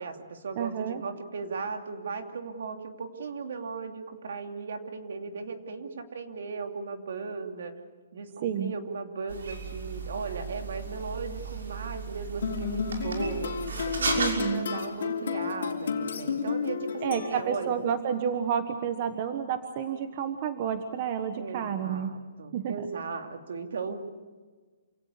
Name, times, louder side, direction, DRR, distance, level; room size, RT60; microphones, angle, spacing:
voice 1, 0.0-7.7 8.1-13.5 13.9-17.8 21.3-24.0, right 4 dB, 65° right, 5 dB, 2.8 m, -37 dB
voice 2, 0.6-1.0 8.4-8.7 14.1-14.7 17.0-22.1 22.5-22.7, right 8 dB, 35° right, 8 dB, 1.2 m, -30 dB
sound 1, 9.3-14.3, right 4 dB, 90° right, 6.0 m, -35 dB
sound 2, 12.4-17.8, left 6 dB, 70° left, 3.3 m, -32 dB
27.5 x 17.5 x 8.3 m, 1.4 s
hypercardioid pair, 170°, 0 cm